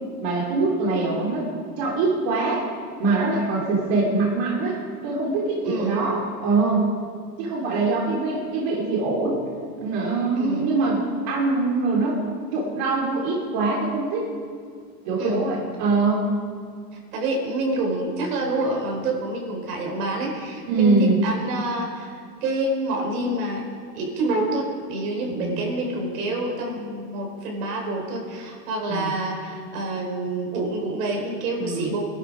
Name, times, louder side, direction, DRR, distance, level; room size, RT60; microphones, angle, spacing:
voice 1, 0.2-1.5 1.8-2.6 3.0-4.8 5.0-6.8 7.4-9.4 9.8-12.2 12.5-14.2 15.0-16.3 20.7-21.2 25.3-25.6 28.9-29.1 31.6-31.9, right 3 dB, 45° right, -3 dB, 3.2 m, -23 dB
voice 2, 5.6-6.0 10.4-10.7 15.2-15.5 17.1-23.6 23.9-32.0, right 2 dB, 70° right, 0 dB, 5.1 m, -27 dB
20.5 x 12.0 x 5.0 m, 2.2 s
supercardioid pair, 155°, 48 cm